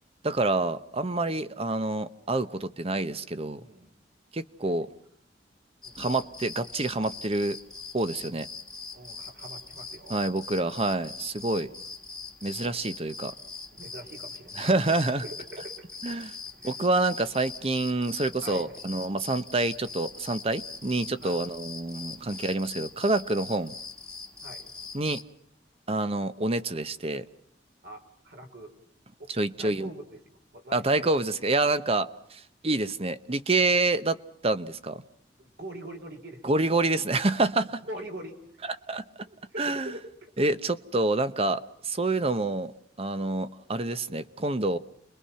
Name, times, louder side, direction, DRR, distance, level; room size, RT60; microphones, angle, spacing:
voice 1, 0.2-3.6 4.3-4.9 6.0-7.6 7.9-8.5 10.1-11.7 12.4-13.3 14.6-15.2 16.0-16.3 16.6-23.7 24.9-25.2 25.9-27.2 29.4-29.9 30.7-34.2 34.4-35.0 36.4-37.8 38.9-39.0 39.6-39.9 40.4-42.7 43.0-44.8, right 2 dB, 35° right, 0.9 m, -27 dB
voice 2, 3.6-3.9 4.6-4.7 5.8-6.1 8.9-10.6 11.5-11.8 13.7-15.9 16.5-16.8 18.4-18.8 21.2-21.4 22.4-22.6 24.4-24.7 27.8-28.7 29.2-29.3 29.6-31.3 35.4-36.4 37.8-38.6 39.2-40.4, right 1 dB, 65° right, 4.2 m, -44 dB
sound 1, 5.8-25.2, left 4 dB, 5° left, 1.5 m, -42 dB
30.0 x 22.0 x 5.7 m
head